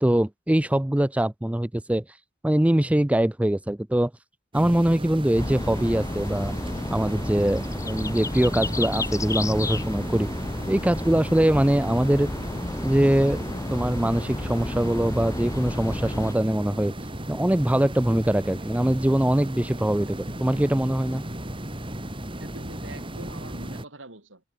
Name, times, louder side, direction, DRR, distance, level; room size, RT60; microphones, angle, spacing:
voice 1, 0.0-2.0 2.4-4.1 4.5-6.5 6.9-10.3 10.7-12.3 12.8-13.4 13.7-16.9 17.3-21.2, right 1 dB, 5° right, 0.4 m, -23 dB
sound 1, 4.5-23.8, right 1 dB, 25° right, 5.8 m, -35 dB
sound 2, 5.3-16.3, left 2 dB, 15° left, 0.9 m, -32 dB
voice 2, 22.3-24.4, right 2 dB, 80° right, 5.0 m, -43 dB
head